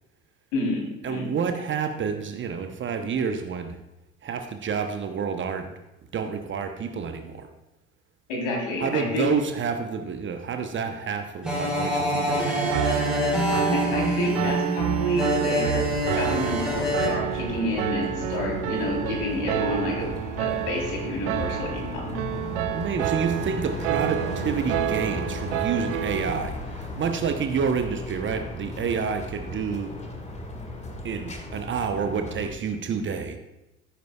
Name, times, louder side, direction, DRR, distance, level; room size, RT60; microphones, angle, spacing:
voice 1, 0.5-1.3 8.3-9.3 13.7-15.8 16.1-20.1 20.4-22.2, left 1 dB, 60° left, -1 dB, 3.6 m, -29 dB
voice 2, 1.0-3.8 4.2-5.7 6.1-7.5 8.8-13.1 22.7-29.9 31.0-33.4, right 6 dB, 30° right, 7 dB, 0.9 m, -29 dB
sound 1, 11.4-17.1, left 1 dB, ahead, 3.9 m, -26 dB
Piano, 12.7-26.4, right 13 dB, 65° right, 0.6 m, -29 dB
sound 2, 15.7-32.5, left 1 dB, 15° left, 1.8 m, -35 dB
15.5 x 9.3 x 2.3 m, 0.95 s
figure-of-eight pair, 70°, 41 cm